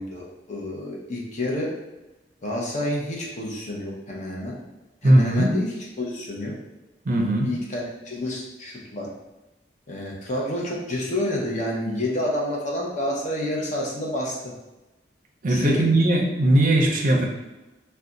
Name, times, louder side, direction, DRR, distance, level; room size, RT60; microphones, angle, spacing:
voice 1, 0.0-1.7 2.4-4.6 5.0-5.7 6.0-6.5 7.2-9.1 9.9-14.3 15.5-15.8, left 1 dB, 40° left, -3 dB, 0.7 m, -29 dB
voice 2, 5.0-5.5 7.0-7.5 15.4-17.3, right 1 dB, 50° right, 1 dB, 0.5 m, -19 dB
2.4 x 2.2 x 3.8 m, 1.0 s
head